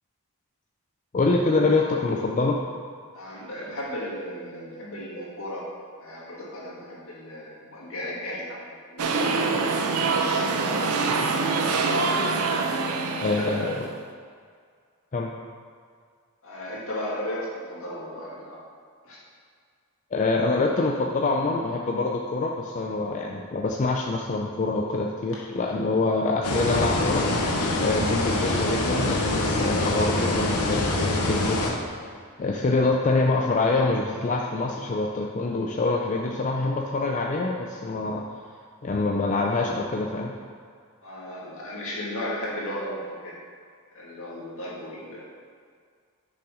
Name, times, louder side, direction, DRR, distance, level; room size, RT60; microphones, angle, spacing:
voice 1, 1.1-2.6 13.2-13.9 15.1-15.3 20.1-31.8 32.4-38.2 38.8-40.3, left 3 dB, 35° left, 0 dB, 0.4 m, -25 dB
voice 2, 3.1-5.6 6.0-11.3 13.2-13.7 16.4-18.6 19.0-19.2 25.7-25.9 27.7-28.0 41.0-43.3 43.9-45.2, left 1 dB, 65° left, -5 dB, 2.0 m, -35 dB
sound 1, 9.0-13.9, right 4 dB, 80° right, 0.6 m, -25 dB
sound 2, 26.4-31.7, left 2 dB, 90° left, 1.0 m, -25 dB
6.2 x 5.9 x 4.8 m, 2.1 s
head